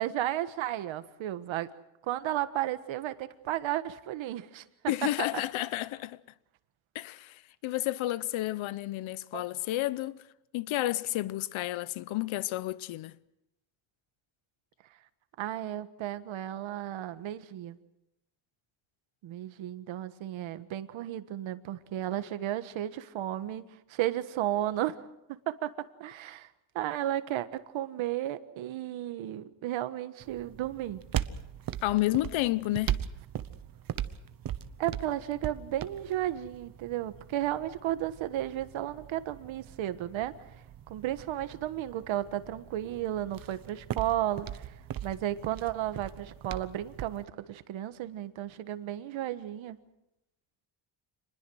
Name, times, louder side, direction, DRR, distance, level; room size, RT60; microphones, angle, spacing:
voice 1, 0.0-1.7 2.1-4.6 9.3-9.4 15.4-17.8 19.2-25.0 25.3-25.7 26.0-26.5 26.7-31.0 34.8-40.3 40.9-44.7 45.0-49.8, right 13 dB, 70° right, 1.5 m, -33 dB
voice 2, 4.9-6.2 6.9-10.3 10.5-13.2 31.8-33.1, left 16 dB, 70° left, 0.9 m, -31 dB
sound 1, 30.2-47.2, right 11 dB, 45° right, 1.0 m, -40 dB
27.5 x 21.0 x 6.3 m
cardioid pair, 135°, 49 cm